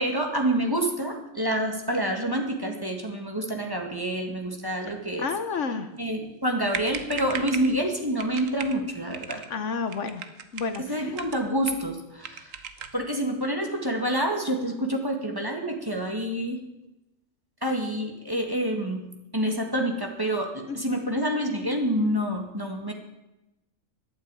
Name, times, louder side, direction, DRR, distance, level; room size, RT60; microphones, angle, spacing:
voice 1, 0.0-5.3 6.0-9.4 10.9-12.5 12.9-16.6 17.6-19.1 19.3-22.9, right 1 dB, 15° right, 2 dB, 1.8 m, -27 dB
voice 2, 5.2-5.9 9.5-10.2 10.5-11.1 20.7-21.0, left 5 dB, 65° left, 9 dB, 1.2 m, -31 dB
sound 1, 6.4-6.5 6.7-7.8 8.2-8.8 9.1-9.5 9.9-10.8 11.1-11.9 12.2-13.0, right 7 dB, 75° right, 1.3 m, -37 dB
11.5 x 9.0 x 8.8 m, 0.95 s
omnidirectional pair, 1.4 m